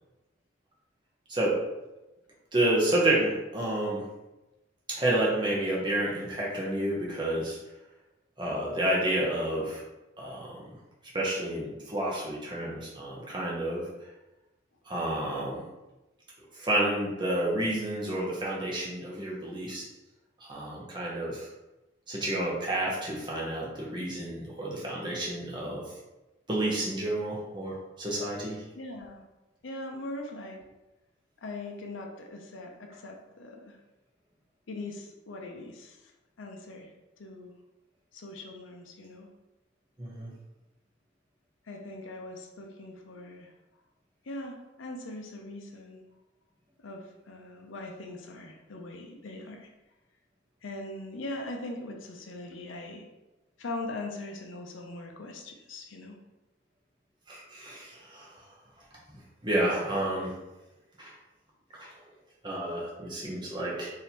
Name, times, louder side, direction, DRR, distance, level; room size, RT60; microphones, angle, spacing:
voice 1, 2.5-4.0 4.9-7.6 8.4-9.8 10.2-10.5 11.1-13.9 14.9-15.6 16.6-19.9 20.4-21.5 22.1-25.8 26.5-28.6 40.0-40.3 57.3-58.3 59.4-60.3 61.0-61.1 61.8-61.9 62.4-63.9, right 1 dB, 25° right, -4 dB, 0.9 m, -30 dB
voice 2, 28.7-29.3 29.6-30.7 31.4-33.8 34.7-36.1 36.4-37.5 38.1-39.3 41.6-43.5 44.2-46.0 46.8-49.7 50.6-53.1 53.6-56.2, left 2 dB, 80° left, 2 dB, 0.6 m, -41 dB
3.2 x 2.8 x 4.1 m, 1.0 s
head